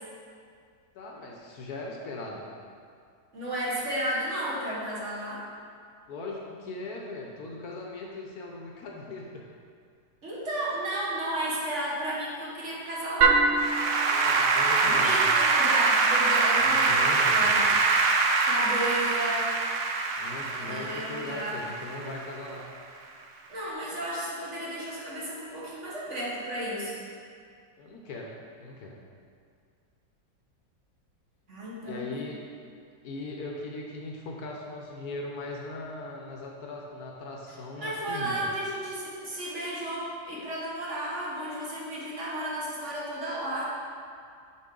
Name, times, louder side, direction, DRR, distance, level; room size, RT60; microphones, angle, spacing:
voice 1, 0.9-2.5 6.1-9.4 14.0-15.3 16.6-17.8 20.2-22.7 27.8-28.3 28.6-29.0 31.8-32.4 33.0-38.4, left 2 dB, 65° left, -1 dB, 1.2 m, -39 dB
voice 2, 3.3-5.4 10.2-13.4 14.8-17.6 18.4-19.5 20.6-21.6 23.5-27.1 31.5-32.2 37.8-43.7, right 1 dB, 40° right, -6 dB, 1.6 m, -33 dB
Applause / Keyboard (musical), 13.2-22.5, right 4 dB, 70° right, 0.7 m, -24 dB
6.9 x 6.1 x 3.8 m, 2.2 s
omnidirectional pair, 1.9 m